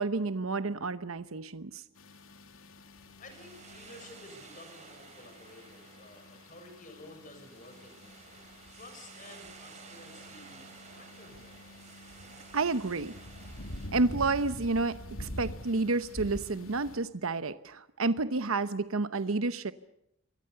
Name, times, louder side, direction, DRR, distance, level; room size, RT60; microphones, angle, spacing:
voice 1, 0.0-1.8 12.5-13.1 13.9-19.7, right 3 dB, 85° right, 13 dB, 0.9 m, -30 dB
Car Starting and idle, 2.0-17.0, left 1 dB, 80° left, 3.0 m, -46 dB
voice 2, 3.2-8.3 8.7-10.7 10.9-11.7, left 2 dB, 40° left, 6 dB, 6.9 m, -52 dB
sound 1, 3.3-13.9, right 5 dB, 35° right, 3.9 m, -53 dB
28.5 x 23.0 x 6.9 m, 0.77 s
head